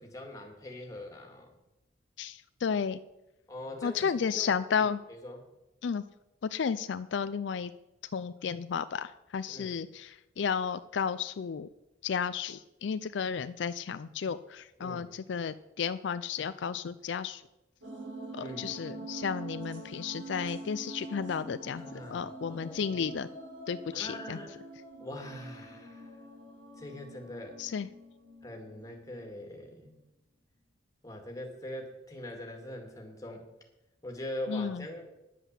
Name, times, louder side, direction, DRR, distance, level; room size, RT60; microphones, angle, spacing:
voice 1, 0.0-1.5 3.5-4.1 4.4-5.4 9.5-9.7 14.8-15.1 18.4-18.8 21.7-22.9 23.9-24.6 25.0-26.2 26.8-27.6 28.4-29.9 31.0-33.5 34.0-35.1, left 1 dB, 20° left, 2 dB, 2.0 m, -42 dB
voice 2, 2.2-3.0 3.8-5.0 5.8-6.0 6.4-7.7 8.1-11.7 12.0-17.4 18.3-21.8 22.1-23.3 23.7-24.4 27.6-27.9 34.5-34.9, left 6 dB, 70° left, 13 dB, 0.4 m, -33 dB
sound 1, 17.8-29.3, right 2 dB, 75° right, 3.4 m, -45 dB
10.0 x 8.0 x 7.5 m, 0.95 s
head